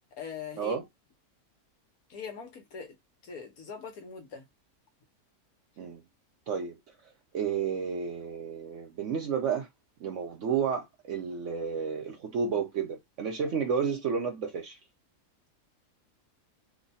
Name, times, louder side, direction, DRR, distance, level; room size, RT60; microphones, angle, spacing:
voice 1, 0.2-0.8 2.1-3.0 3.2-4.5, left 6 dB, 75° left, 1.3 m, -41 dB
voice 2, 6.5-6.8 7.3-9.7 10.0-14.8, right 6 dB, 60° right, 0.9 m, -31 dB
3.1 x 2.2 x 4.0 m
omnidirectional pair, 1.6 m